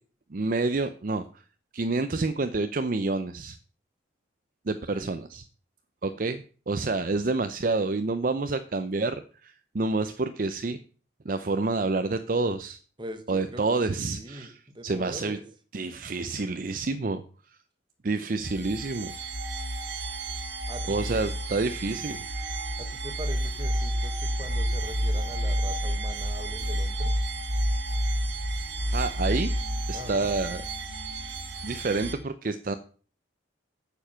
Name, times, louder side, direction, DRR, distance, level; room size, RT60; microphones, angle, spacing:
voice 1, 0.3-1.2 1.7-3.6 4.7-5.4 6.0-10.8 11.3-12.8 13.3-14.6 14.8-15.4 15.7-17.2 18.0-19.1 20.9-22.2 28.9-29.5 29.9-30.6 31.6-32.7, right 3 dB, 45° right, 10 dB, 0.5 m, -28 dB
voice 2, 13.0-14.5 14.7-15.4 20.7-21.2 22.8-27.1 29.9-30.3, equal, 25° right, 8 dB, 1.3 m, -42 dB
sound 1, 18.4-32.1, right 1 dB, 70° right, 1.7 m, -30 dB
9.0 x 7.0 x 5.6 m, 0.40 s
head